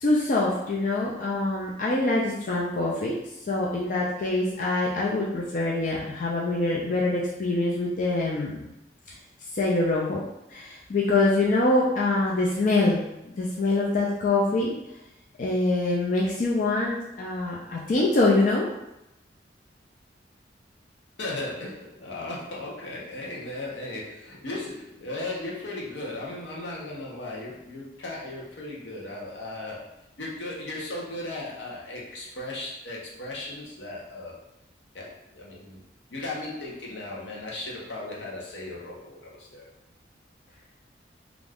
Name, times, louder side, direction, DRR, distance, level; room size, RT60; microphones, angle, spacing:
voice 1, 0.0-3.1 3.5-8.7 9.5-10.2 10.5-14.8 15.4-18.7, left 2 dB, 45° left, -4 dB, 0.4 m, -24 dB
voice 2, 21.2-29.8 30.2-34.3 34.9-39.7, left 2 dB, 80° left, -3 dB, 0.7 m, -36 dB
2.5 x 2.3 x 3.3 m, 0.88 s
head